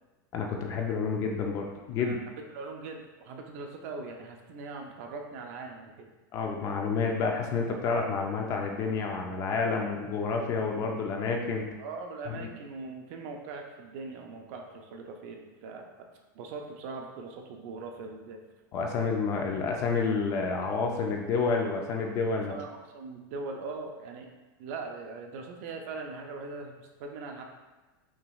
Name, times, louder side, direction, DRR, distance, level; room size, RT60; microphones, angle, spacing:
voice 1, 0.3-2.2 6.3-11.7 12.3-12.5 18.7-22.5, left 4 dB, 30° left, 2 dB, 0.4 m, -29 dB
voice 2, 2.0-6.1 11.8-16.1 16.3-18.4 22.5-24.3 24.6-27.4, right 3 dB, 45° right, 3 dB, 0.5 m, -41 dB
5.8 x 3.0 x 2.3 m, 1.2 s
supercardioid pair, 165°, 11 cm